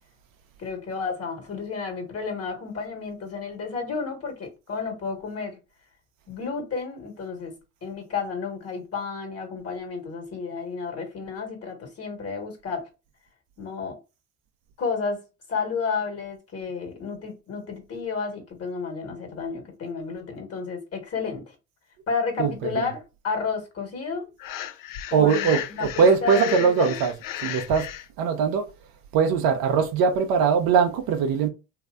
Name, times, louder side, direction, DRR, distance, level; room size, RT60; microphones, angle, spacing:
voice 1, 0.6-5.6 6.3-12.9 13.6-14.0 14.8-15.2 15.5-21.5 22.1-24.3 25.1-27.0, left 5 dB, 35° left, 1.5 m, -31 dB
voice 2, 22.4-22.8 25.1-27.1 27.4-27.9 28.2-28.7 29.1-31.5, right 6 dB, 55° right, 0.7 m, -21 dB
Breathing, 24.4-28.0, left 12 dB, 50° left, 0.6 m, -34 dB
3.1 x 2.8 x 2.4 m
hypercardioid pair, 70°, 42 cm